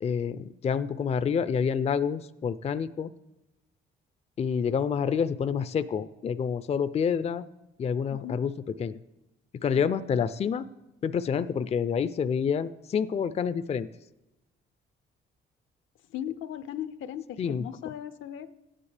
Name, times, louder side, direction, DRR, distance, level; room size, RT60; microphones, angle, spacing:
voice 1, 0.0-3.1 4.4-7.4 7.8-8.5 8.8-9.0 9.6-10.7 11.0-13.9 17.4-17.7, left 7 dB, 30° left, 14 dB, 0.4 m, -28 dB
voice 2, 9.7-10.2 16.1-18.5, left 10 dB, 75° left, 11 dB, 0.6 m, -38 dB
16.0 x 9.8 x 3.3 m, 0.98 s
cardioid pair, 90°, 20 cm